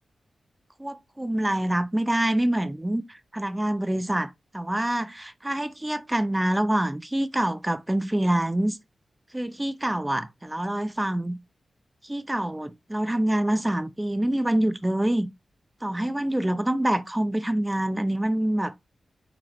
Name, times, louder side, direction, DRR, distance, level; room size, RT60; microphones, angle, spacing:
voice 1, 0.8-8.8 9.3-11.4 12.0-15.3 15.8-18.7, right 1 dB, 15° right, 0.5 m, -26 dB
5.8 x 3.2 x 2.5 m
cardioid pair, 45°, 0 cm